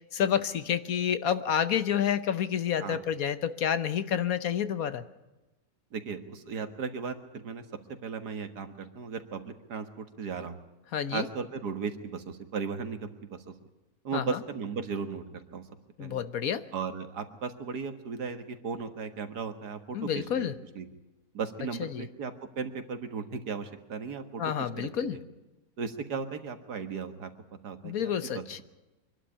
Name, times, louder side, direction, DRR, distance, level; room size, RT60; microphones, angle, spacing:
voice 1, 0.1-5.0 10.9-11.3 14.1-14.4 16.0-16.6 19.9-20.5 21.8-22.1 24.4-25.2 27.8-28.6, left 9 dB, 65° left, 12 dB, 1.4 m, -29 dB
voice 2, 5.9-7.6 8.0-10.6 11.1-13.5 14.0-15.6 16.0-16.2 16.7-20.9 21.3-24.4 24.8-25.2 25.8-27.3 27.6-28.6, right 5 dB, 85° right, 8 dB, 2.1 m, -36 dB
24.5 x 12.0 x 10.0 m, 1.1 s
omnidirectional pair, 1.7 m